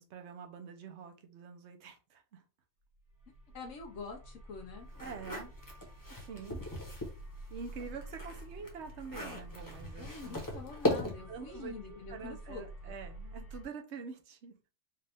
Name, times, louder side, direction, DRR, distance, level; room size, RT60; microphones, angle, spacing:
voice 1, 0.0-2.4 5.0-5.5 6.2-6.7 7.5-10.6 11.3-14.5, right 5 dB, 70° right, 1.1 m, -46 dB
sound 1, 3.0-13.6, right 1 dB, 90° right, 1.7 m, -49 dB
voice 2, 3.5-4.9 10.0-13.0, left 4 dB, 85° left, 1.1 m, -46 dB
sound 2, 4.9-7.2 7.6-11.4, left 1 dB, 15° left, 1.0 m, -38 dB
4.6 x 2.4 x 3.4 m
omnidirectional pair, 1.2 m